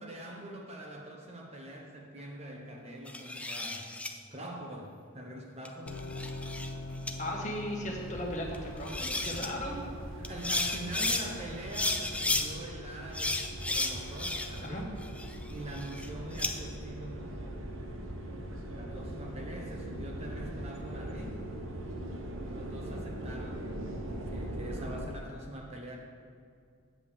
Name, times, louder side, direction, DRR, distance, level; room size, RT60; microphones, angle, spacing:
voice 1, 0.0-4.0 4.3-6.0 9.6-9.8 10.2-15.0 15.5-17.8 18.6-21.4 22.4-26.0, right 1 dB, 30° right, 0 dB, 1.0 m, -44 dB
sound 1, 3.1-4.1 5.7-6.7 7.1-7.2 8.5-8.6 8.9-9.5 10.2-11.2 11.7-12.5 13.1-14.7 15.0-16.5, left 2 dB, 5° left, 0.3 m, -33 dB
sound 2, 5.9-11.9, left 1 dB, 70° left, 0.7 m, -44 dB
voice 2, 7.2-9.8 14.6-14.8, left 1 dB, 35° left, -1 dB, 1.3 m, -36 dB
sound 3, 7.8-25.1, right 1 dB, 70° right, 1.0 m, -41 dB
8.5 x 5.3 x 7.2 m, 2.2 s
head